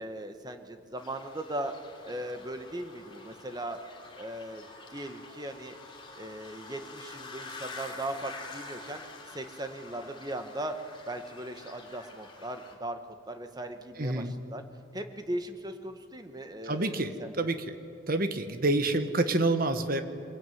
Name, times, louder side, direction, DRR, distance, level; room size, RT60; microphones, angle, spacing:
voice 1, 0.0-1.7 2.0-3.8 4.2-4.6 4.9-5.8 6.2-9.0 9.3-10.8 11.1-13.0 13.3-14.6 14.9-17.5, right 1 dB, 20° right, 7 dB, 1.3 m, -38 dB
sound 1, 1.0-12.7, left 3 dB, 25° left, 3.0 m, -47 dB
voice 2, 14.0-14.3 16.6-17.6 18.1-20.0, right 2 dB, 45° right, 9 dB, 1.3 m, -28 dB
23.5 x 21.5 x 9.4 m, 2.6 s
head